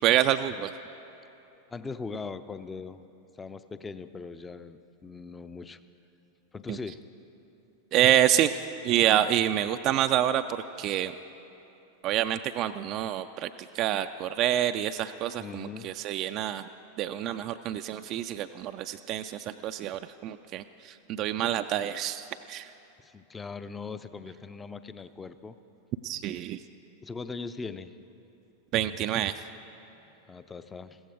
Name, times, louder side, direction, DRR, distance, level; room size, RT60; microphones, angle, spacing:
voice 1, 0.0-0.7 6.7-6.8 7.9-8.5 8.8-11.2 12.0-16.7 17.0-22.7 26.0-26.6 28.7-29.3, right 12 dB, 35° right, 9 dB, 0.3 m, -27 dB
voice 2, 1.7-3.0 3.4-5.8 6.5-7.0 15.4-15.9 23.0-25.6 27.0-27.9 30.3-31.0, left 4 dB, 15° left, 13 dB, 0.5 m, -40 dB
15.5 x 15.0 x 5.0 m, 2.9 s
figure-of-eight pair, 90°, 0 cm